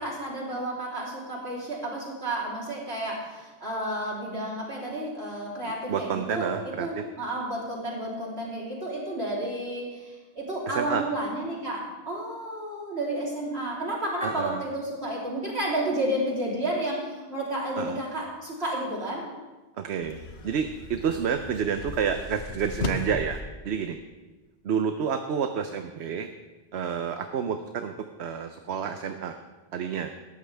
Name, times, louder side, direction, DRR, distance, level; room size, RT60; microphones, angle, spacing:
voice 1, 0.0-19.3, right 1 dB, 75° right, -4 dB, 3.7 m, -31 dB
voice 2, 5.9-7.0 10.7-11.0 14.2-14.6 17.8-18.0 19.8-24.0 24.6-26.3 26.7-29.4 29.7-30.1, right 7 dB, 90° right, 7 dB, 1.0 m, -29 dB
sound 1, 20.0-23.4, left 3 dB, 75° left, 1.5 m, -36 dB
17.5 x 13.5 x 3.4 m, 1.2 s
omnidirectional pair, 1.1 m